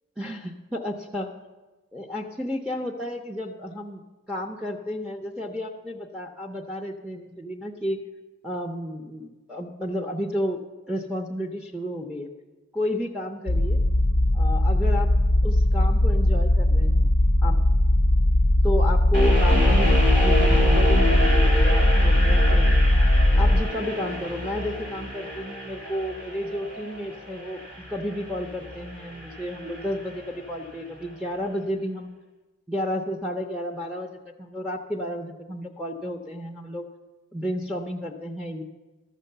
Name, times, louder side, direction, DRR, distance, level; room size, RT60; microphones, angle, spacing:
voice 1, 0.2-1.3 1.9-4.0 4.3-8.0 8.4-10.6 10.9-12.3 12.7-13.8 14.3-15.1 15.4-17.1 17.4-17.6 18.6-19.9 20.2-22.7 23.3-27.6 27.9-32.1 32.7-36.9 37.3-38.6, left 1 dB, 5° right, 1 dB, 0.6 m, -31 dB
sound 1, 13.5-23.6, left 1 dB, 75° left, 0.6 m, -19 dB
sound 2, 19.1-30.2, left 1 dB, 60° right, 2.5 m, -28 dB
13.0 x 6.3 x 6.7 m, 1.2 s
head